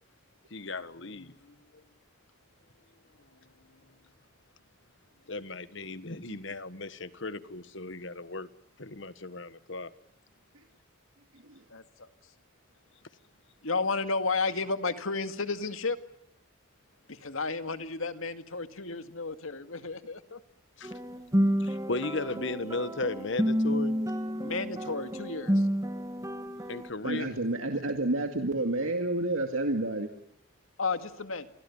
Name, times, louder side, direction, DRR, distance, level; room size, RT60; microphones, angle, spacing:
voice 1, 0.5-1.3 5.3-8.5 8.8-9.9 20.8-20.9 21.6-24.0 26.7-27.3, left 3 dB, 65° left, 1.5 m, -36 dB
voice 2, 11.7-12.1 13.6-16.0 17.1-20.4 24.4-25.7 30.8-31.5, left 4 dB, 80° left, 2.2 m, -32 dB
sound 1, 20.8-26.9, equal, 15° right, 1.8 m, -30 dB
voice 3, 27.0-30.1, right 2 dB, 85° right, 2.2 m, -30 dB
29.5 x 23.5 x 7.3 m
head